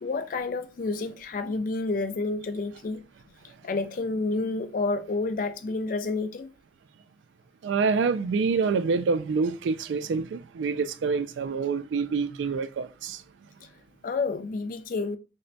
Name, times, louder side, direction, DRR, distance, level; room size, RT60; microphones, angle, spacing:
voice 1, 0.0-3.0 3.4-6.5 14.0-15.2, left 3 dB, 45° left, 0.3 m, -29 dB
voice 2, 7.6-13.2, right 5 dB, 80° right, 0.3 m, -27 dB
3.2 x 2.1 x 3.9 m
head